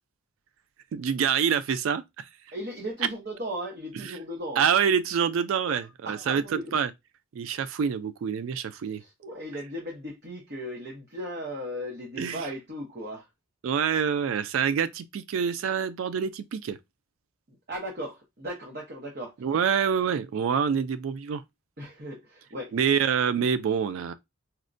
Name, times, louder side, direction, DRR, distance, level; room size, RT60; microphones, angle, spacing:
voice 1, 0.9-2.3 4.0-4.2 4.6-6.9 7.3-9.0 12.2-12.4 13.6-16.8 19.4-21.4 22.7-24.1, right 7 dB, 75° right, 0.3 m, -26 dB
voice 2, 2.5-4.6 5.7-6.7 8.8-13.3 17.5-19.3 21.8-22.7, equal, 45° right, 0.8 m, -37 dB
4.3 x 2.1 x 2.5 m
head